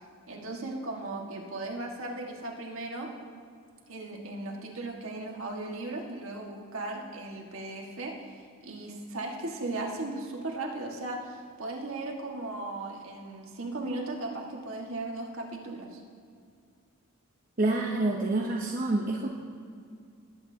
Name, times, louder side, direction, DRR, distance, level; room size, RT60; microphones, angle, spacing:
voice 1, 0.3-3.1 3.9-16.0, right 2 dB, 65° right, 0 dB, 1.7 m, -37 dB
voice 2, 17.6-19.3, right 2 dB, 40° right, -2 dB, 0.8 m, -27 dB
20.0 x 8.7 x 2.8 m, 2.3 s
head